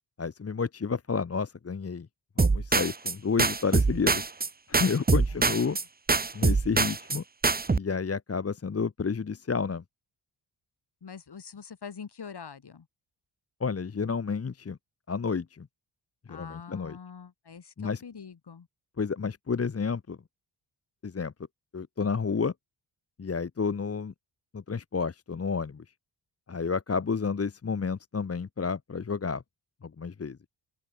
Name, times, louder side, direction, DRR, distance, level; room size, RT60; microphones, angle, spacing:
voice 1, 0.2-2.1 2.4-4.2 4.7-5.8 6.3-7.2 7.7-9.8 13.6-14.8 15.1-15.7 16.3-17.0 17.8-18.0 19.0-20.2 21.0-21.3 21.7-22.5 23.2-24.1 24.5-25.8 26.5-29.4 29.8-30.4, left 5 dB, 30° left, 1.0 m, -30 dB
sound 1, 2.4-3.1 3.4-4.5 4.7-5.8 6.1-7.2 7.4-7.8, right 4 dB, 20° right, 0.8 m, -24 dB
voice 2, 5.3-5.8 11.0-12.9 16.3-18.7, left 6 dB, 55° left, 3.8 m, -44 dB
open air
wide cardioid pair, 100°, 47 cm